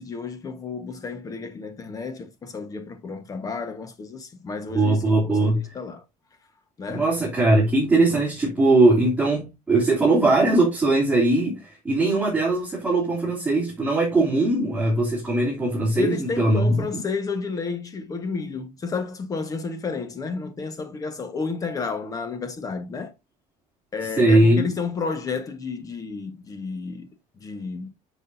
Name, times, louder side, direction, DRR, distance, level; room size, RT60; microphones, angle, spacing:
voice 1, 0.0-5.0 5.2-6.0 6.8-7.1 16.0-23.1 23.9-27.1 27.4-27.9, left 4 dB, 25° left, 1.4 m, -31 dB
voice 2, 4.7-5.7 6.9-16.9 24.0-24.6, right 2 dB, 10° right, 3.1 m, -20 dB
9.9 x 6.2 x 2.7 m
cardioid pair, 165°, 15 cm